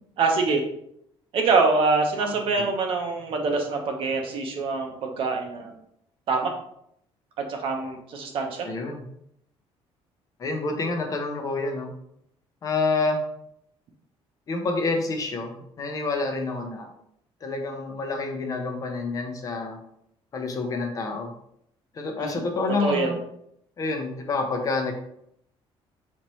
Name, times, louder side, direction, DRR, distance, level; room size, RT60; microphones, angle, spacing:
voice 1, 0.2-0.6 1.3-5.8 6.3-6.5 7.4-8.7 22.2-22.4 22.8-23.1, right 4 dB, 55° right, 3 dB, 0.7 m, -25 dB
voice 2, 2.2-2.7 8.6-9.0 10.4-11.9 12.6-13.2 14.5-16.9 17.4-19.8 20.3-21.3 21.9-23.2 23.8-24.9, left 3 dB, 35° left, 4 dB, 0.6 m, -28 dB
4.1 x 2.9 x 3.0 m, 0.74 s
cardioid pair, 155°, 11 cm